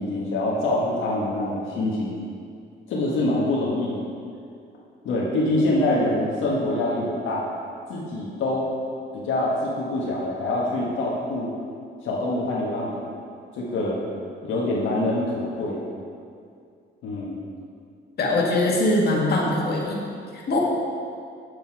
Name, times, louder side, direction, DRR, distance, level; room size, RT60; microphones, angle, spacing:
voice 1, 0.0-2.1 2.9-4.1 5.0-7.4 7.9-8.7 9.1-11.5 12.0-13.1 13.5-14.0 14.4-15.8 17.0-17.4, left 1 dB, 80° left, -5 dB, 1.5 m, -25 dB
voice 2, 18.2-20.0 20.5-20.6, left 2 dB, 55° left, -3 dB, 1.8 m, -22 dB
8.0 x 6.7 x 4.7 m, 2.3 s
cardioid pair, 90°, 20 cm